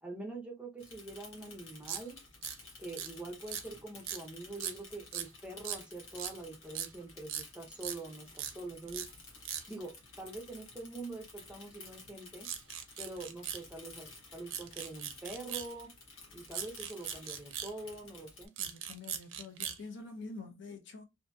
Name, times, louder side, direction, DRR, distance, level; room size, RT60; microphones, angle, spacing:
voice 1, 0.0-2.2 2.8-9.1 9.7-12.5 13.0-15.9 16.3-18.5, right 2 dB, 5° right, 0.6 m, -45 dB
Bicycle / Mechanisms, 0.8-18.5, left 3 dB, 80° left, 1.0 m, -53 dB
sound 1, 1.9-2.0 2.4-2.6 3.0-3.1 3.4-3.6 4.1-4.2 4.6-4.8 5.1-5.3 5.7-5.8 6.2-6.3 6.8-6.9 7.3-7.4 7.8-8.0 8.4-8.5 8.9-9.1 9.5-9.6 12.5-13.6 14.5-15.7 16.5-17.7 18.5-19.8, right 9 dB, 80° right, 0.5 m, -39 dB
voice 2, 18.6-21.0, left 3 dB, 60° left, 0.6 m, -46 dB
2.7 x 2.6 x 2.2 m
head